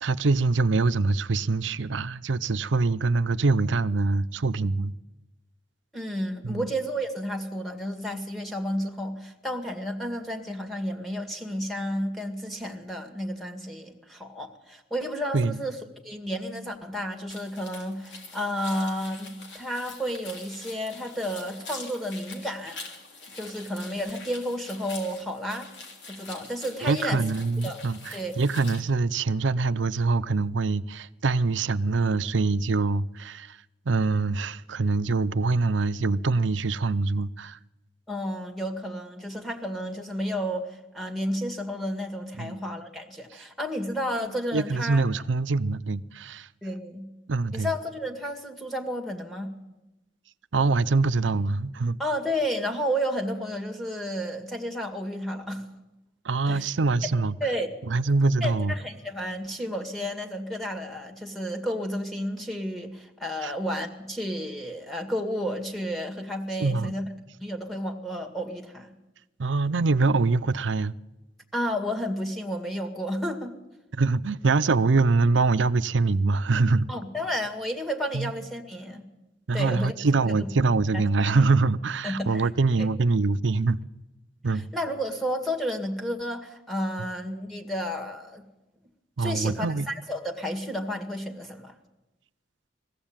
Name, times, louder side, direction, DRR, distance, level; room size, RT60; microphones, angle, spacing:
voice 1, 0.0-4.9 6.4-6.7 15.3-15.6 26.8-33.6 33.9-37.6 42.4-42.6 44.5-46.5 47.3-47.7 50.5-52.0 56.2-57.3 57.9-58.7 63.4-63.5 66.6-66.9 69.4-70.9 73.9-76.9 78.1-78.3 79.5-83.8 84.4-84.6 89.2-89.9, right 3 dB, 85° right, 0.6 m, -24 dB
voice 2, 5.9-15.8 16.0-22.8 23.3-25.7 26.1-27.2 27.6-27.8 28.1-28.3 38.1-45.0 46.6-47.1 47.5-49.5 52.0-55.7 56.5-56.7 57.4-57.7 58.4-67.0 67.4-69.0 71.5-73.6 76.9-79.0 79.5-79.9 80.3-80.5 80.9-81.3 82.0-82.5 84.5-88.4 89.2-91.8, equal, ahead, 2.1 m, -31 dB
sound 1, 17.3-28.8, left 3 dB, 65° left, 3.4 m, -44 dB
21.0 x 15.0 x 8.9 m
head